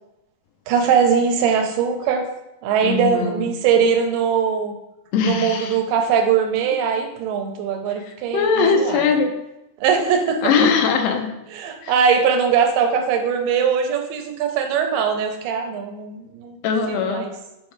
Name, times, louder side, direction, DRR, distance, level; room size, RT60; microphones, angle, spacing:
voice 1, 0.7-2.2 2.6-4.7 5.2-9.0 9.8-10.4 11.5-16.6 16.9-17.3, right 6 dB, 85° right, 5 dB, 2.7 m, -21 dB
voice 2, 2.8-3.5 5.1-5.8 8.0-9.3 10.4-11.3 11.8-11.9 16.6-17.3, left 5 dB, 85° left, 4 dB, 2.7 m, -21 dB
7.0 x 3.2 x 4.5 m, 0.91 s
omnidirectional pair, 4.5 m